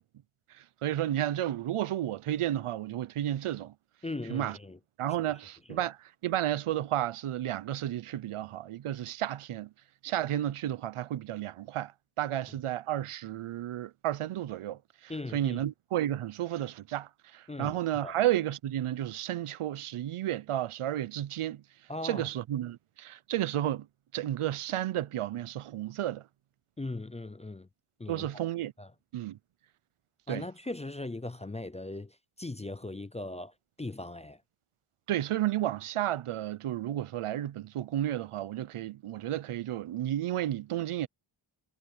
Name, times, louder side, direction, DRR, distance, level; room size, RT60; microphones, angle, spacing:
voice 1, 0.8-3.7 4.3-4.6 5.0-6.0 6.2-9.7 10.0-11.9 12.2-14.8 15.3-21.6 22.0-23.9 24.1-26.2 28.1-28.7 29.1-29.4 30.3-30.4 35.1-41.1, right 12 dB, 90° right, 0.7 m, -32 dB
voice 2, 4.0-4.8 5.1-5.2 5.7-5.9 15.1-15.6 17.5-18.2 21.9-22.3 26.8-27.7 28.0-28.3 28.8-28.9 30.3-34.4, left 2 dB, 15° left, 0.4 m, -39 dB
wide cardioid pair, 180°, 49 cm